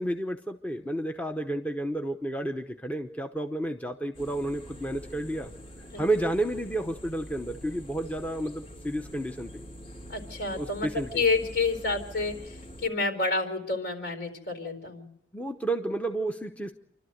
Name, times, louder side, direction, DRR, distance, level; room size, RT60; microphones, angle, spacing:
voice 1, 0.0-5.5 6.0-9.6 10.5-11.2 15.3-16.7, right 1 dB, 10° left, 5 dB, 0.8 m, -31 dB
sound 1, 4.1-12.9, equal, 45° left, 2.6 m, -45 dB
voice 2, 10.1-10.9 11.1-12.3 12.8-15.1, left 3 dB, 65° left, 7 dB, 4.4 m, -28 dB
28.5 x 12.5 x 7.9 m, 0.77 s
head